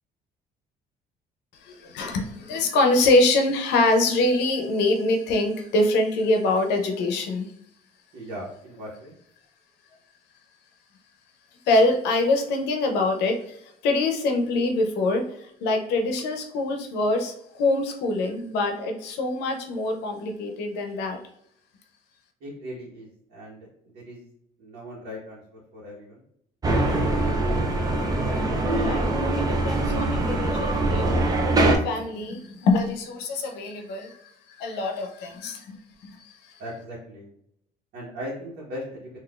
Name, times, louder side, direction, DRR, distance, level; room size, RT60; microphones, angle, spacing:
voice 1, 1.6-7.5 11.7-21.2 28.7-29.1 29.4-31.1 31.6-34.2 34.6-35.8 36.0-36.3, left 2 dB, 85° left, 4 dB, 0.7 m, -24 dB
voice 2, 8.1-9.1 22.4-23.6 23.9-24.2 24.6-26.2 36.6-37.3 37.9-39.1, equal, 75° right, -6 dB, 1.1 m, -38 dB
sound 1, 26.6-31.8, right 2 dB, 20° right, 0.6 m, -23 dB
3.8 x 2.5 x 2.4 m, 0.73 s
cardioid pair, 110°, 17 cm